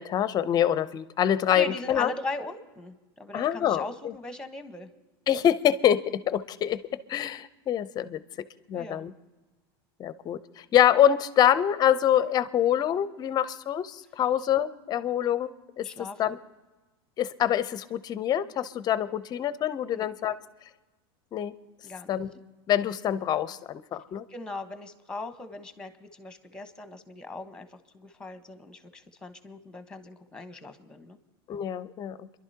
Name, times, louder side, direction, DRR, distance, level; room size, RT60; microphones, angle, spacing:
voice 1, 0.0-2.1 3.3-4.1 5.3-6.0 6.3-6.8 7.1-8.2 8.7-9.1 10.0-15.9 16.2-16.4 17.2-20.4 21.3-21.5 22.1-22.3 22.7-24.2 31.5-32.3, left 10 dB, 30° left, 15 dB, 0.6 m, -25 dB
voice 2, 1.5-4.9 8.7-9.1 15.8-16.4 19.9-20.0 21.8-22.2 24.3-31.2, left 2 dB, 5° left, 9 dB, 1.1 m, -39 dB
28.5 x 11.5 x 2.8 m, 1.1 s
supercardioid pair, 125°, 13 cm